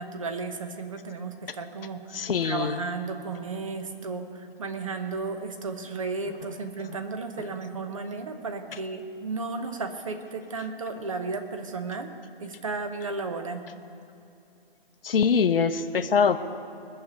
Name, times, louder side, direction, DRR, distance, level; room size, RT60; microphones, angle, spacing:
voice 1, 0.0-12.1 12.4-13.7, right 3 dB, 35° right, 7 dB, 0.9 m, -34 dB
voice 2, 2.1-2.8 15.0-16.4, left 6 dB, 75° left, 9 dB, 0.8 m, -23 dB
20.0 x 6.9 x 8.3 m, 2.7 s
hypercardioid pair, 175°, 29 cm